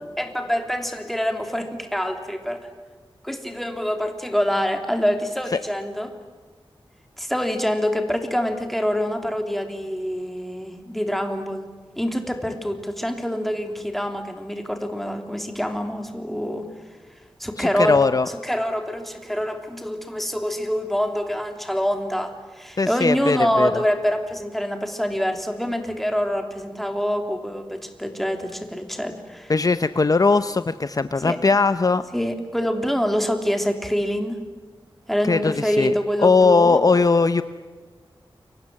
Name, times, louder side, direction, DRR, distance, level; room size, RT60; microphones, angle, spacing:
voice 1, 0.2-2.7 3.2-6.1 7.2-11.6 12.0-16.6 17.4-29.5 31.2-31.4 32.1-34.4 35.1-36.8, equal, ahead, 5 dB, 3.3 m, -25 dB
voice 2, 17.8-18.3 22.8-23.8 29.5-32.0 35.3-35.9 36.2-37.4, left 4 dB, 40° left, 11 dB, 0.7 m, -19 dB
29.5 x 24.5 x 7.7 m, 1.4 s
wide cardioid pair, 105°, 9 cm